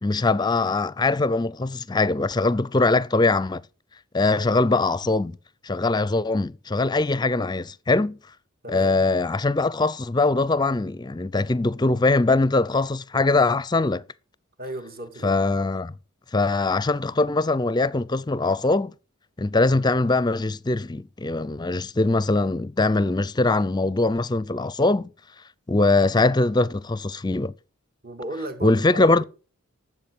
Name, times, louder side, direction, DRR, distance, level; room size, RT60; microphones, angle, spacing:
voice 1, 0.0-3.6 4.1-5.4 5.6-8.2 8.7-14.0 15.2-15.9 16.3-18.9 19.4-25.1 25.7-27.5 28.6-29.2, left 3 dB, 20° left, 0.5 m, -22 dB
voice 2, 8.6-8.9 14.6-15.3 28.0-29.3, right 1 dB, 45° right, 2.7 m, -35 dB
12.0 x 7.6 x 7.7 m
head